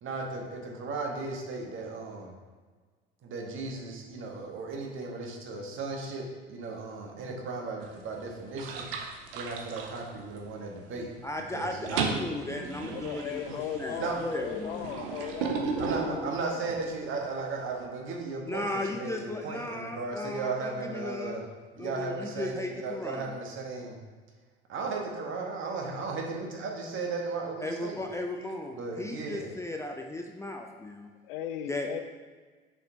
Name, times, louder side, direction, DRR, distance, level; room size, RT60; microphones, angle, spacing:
voice 1, 0.0-2.3 3.2-8.9 9.3-11.1 11.3-12.1 13.5-13.6 14.0-14.3 15.8-21.4 21.8-23.9 24.7-28.0 28.7-29.5, right 3 dB, 45° right, 0 dB, 1.5 m, -36 dB
sound 1, 7.8-8.2 8.6-10.7 11.0-11.4 11.6-16.9, right 5 dB, 70° right, 0.9 m, -35 dB
voice 2, 11.2-14.9 18.5-21.4 21.8-23.3 27.6-31.1 31.7-32.0, left 2 dB, 10° left, 3 dB, 0.6 m, -36 dB
voice 3, 12.9-16.9 31.3-32.0, left 10 dB, 65° left, 10 dB, 0.5 m, -38 dB
6.8 x 5.9 x 2.9 m, 1.4 s
figure-of-eight pair, 65°, 29 cm